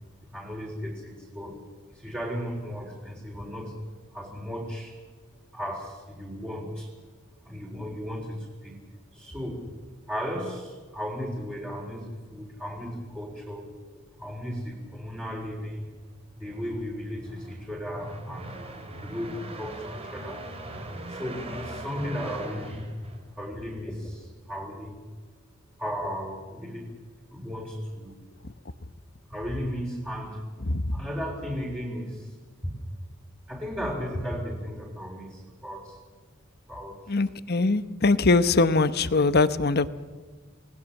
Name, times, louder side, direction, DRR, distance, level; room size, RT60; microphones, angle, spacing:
voice 1, 0.3-1.6 1.9-3.8 4.1-5.0 5.5-6.9 7.4-8.8 9.1-9.7 10.1-13.7 14.2-15.9 16.4-18.5 19.0-20.4 21.1-22.9 23.3-25.0 25.8-26.9 27.3-28.2 29.3-30.4 30.9-32.4 32.6-32.7 33.5-36.0 36.7-37.2 39.1-39.2, equal, 10° right, -4 dB, 4.0 m, -35 dB
sound 1, 16.1-23.7, right 1 dB, 30° right, 3.0 m, -40 dB
voice 2, 37.1-39.9, left 3 dB, 50° left, 14 dB, 0.9 m, -22 dB
28.5 x 19.5 x 7.2 m, 1.4 s
head